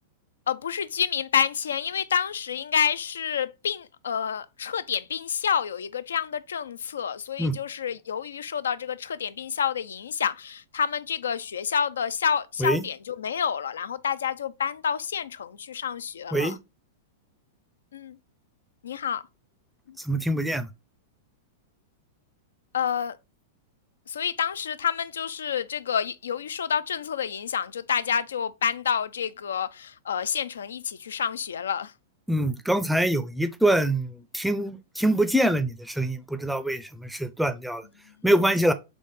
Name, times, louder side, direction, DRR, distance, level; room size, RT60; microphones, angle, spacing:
voice 1, 0.5-16.6 17.9-18.2 18.8-19.2 19.9-20.0 22.7-23.2 24.1-31.9 38.1-38.2, left 7 dB, 70° left, 0.3 m, -28 dB
voice 2, 20.0-20.7 32.3-37.8 38.2-38.7, right 1 dB, ahead, 0.5 m, -24 dB
4.1 x 3.1 x 3.3 m
figure-of-eight pair, 95°, 0 cm